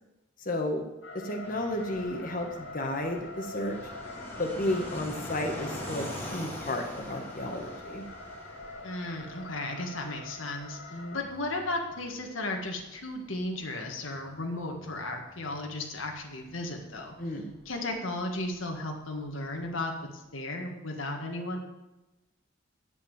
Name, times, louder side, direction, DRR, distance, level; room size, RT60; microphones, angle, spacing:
voice 1, 0.4-0.8 1.1-3.8 4.4-8.0 10.9-11.2 17.2-17.5, left 1 dB, 45° left, 3 dB, 1.4 m, -32 dB
sound 1, 1.0-11.2, left 2 dB, 70° left, 1.7 m, -45 dB
Fixed-wing aircraft airplane, 1.4-19.8, left 1 dB, 10° left, 2.1 m, -45 dB
voice 2, 8.8-10.8 11.1-17.1 17.7-19.9 20.3-21.6, left 2 dB, 90° left, 2 dB, 1.8 m, -35 dB
8.6 x 8.6 x 7.3 m, 0.99 s
head